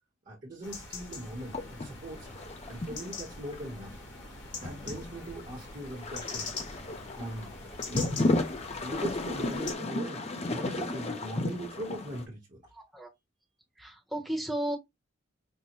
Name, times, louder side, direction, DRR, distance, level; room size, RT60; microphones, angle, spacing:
voice 1, 0.2-2.3 2.7-4.0 4.5-6.5 7.1-7.5 7.8-12.7, right 1 dB, 40° right, 1.1 m, -40 dB
sound 1, 0.6-9.7, left 4 dB, 60° left, 1.2 m, -43 dB
sound 2, 1.1-12.3, left 2 dB, 30° left, 0.5 m, -34 dB
voice 2, 12.7-13.1 13.8-14.8, right 1 dB, ahead, 0.8 m, -34 dB
5.4 x 2.1 x 3.0 m
head